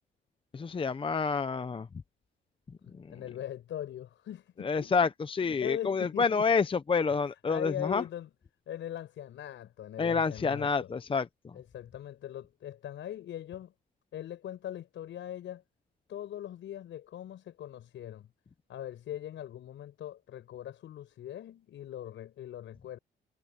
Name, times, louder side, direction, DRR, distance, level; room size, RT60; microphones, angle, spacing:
voice 1, 0.5-1.9 2.9-3.2 4.6-8.0 10.0-11.5, left 5 dB, 25° left, 0.7 m, -28 dB
voice 2, 2.8-5.1 5.4-6.4 7.2-8.3 8.7-10.9 11.5-13.7 14.1-15.6 16.1-18.3 18.7-23.0, left 11 dB, 75° left, 5.7 m, -41 dB
cardioid pair, 90°, 20 cm